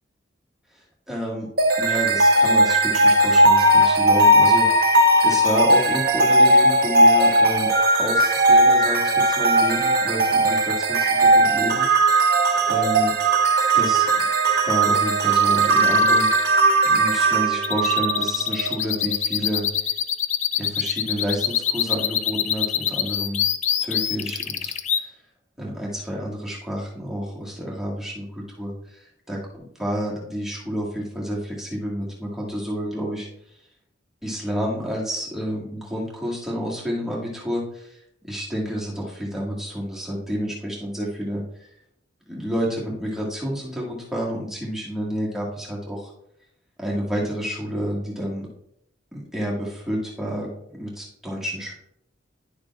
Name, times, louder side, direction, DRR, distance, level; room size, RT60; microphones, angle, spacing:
voice 1, 1.1-1.5 1.8-4.7 5.2-7.7 8.0-11.9 12.7-13.1 13.7-14.1 14.6-19.6 20.6-23.4 23.8-25.1 25.6-33.3 34.2-38.0 38.2-41.4 42.3-46.1 46.8-48.5 49.1-51.8, equal, ahead, -4 dB, 1.6 m, -29 dB
sound 1, 1.6-18.7, right 1 dB, 50° right, 0.9 m, -18 dB
sound 2, 15.3-25.0, left 9 dB, 35° left, 0.3 m, -25 dB
10.5 x 6.5 x 2.4 m, 0.75 s
head